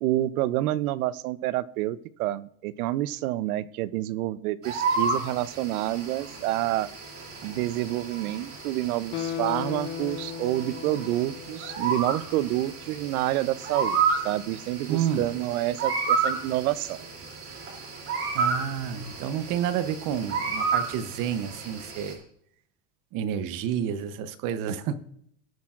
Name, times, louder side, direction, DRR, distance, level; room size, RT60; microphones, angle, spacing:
voice 1, 0.0-6.9 7.4-17.0, right 15 dB, 85° right, 18 dB, 0.7 m, -28 dB
sound 1, 4.6-22.1, right 5 dB, 30° right, 3.0 m, -31 dB
Guitar, 9.1-12.4 12.7-12.8, left 9 dB, 30° left, 0.4 m, -36 dB
voice 2, 14.9-15.3 18.3-22.2 23.1-24.9, right 9 dB, 50° right, 12 dB, 0.9 m, -30 dB
18.5 x 8.3 x 2.5 m, 0.68 s
supercardioid pair, 140°, 42 cm